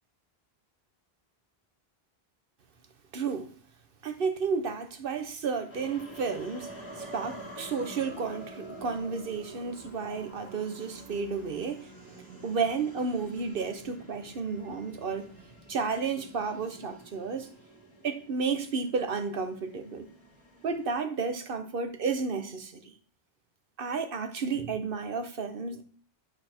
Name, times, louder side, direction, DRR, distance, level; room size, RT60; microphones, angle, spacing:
voice 1, 3.1-3.6 4.0-15.3 15.7-17.5 18.0-20.1 20.6-22.9 23.8-25.8, right 5 dB, 60° right, 1.1 m, -32 dB
sound 1, 5.7-21.0, right 1 dB, 25° left, 1.8 m, -48 dB
11.0 x 4.8 x 4.4 m
omnidirectional pair, 1.1 m